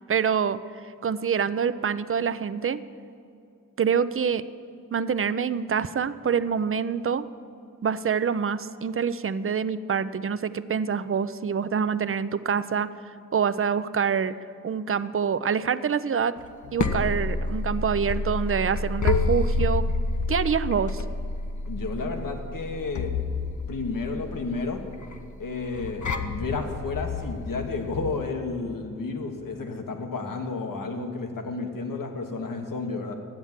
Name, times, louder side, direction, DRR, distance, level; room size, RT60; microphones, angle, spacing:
voice 1, 0.1-0.6 1.0-2.8 3.8-4.4 4.9-7.3 7.8-12.9 13.3-14.3 14.6-16.3 16.7-19.9 20.3-21.0, right 6 dB, 40° right, 15 dB, 0.5 m, -26 dB
sound 1, 16.4-28.3, left 3 dB, 60° left, 0.8 m, -29 dB
voice 2, 21.7-23.2 23.7-24.8 25.4-33.1, left 3 dB, 75° left, 4 dB, 1.3 m, -31 dB
10.5 x 8.0 x 7.3 m, 2.5 s
cardioid pair, 45°, 33 cm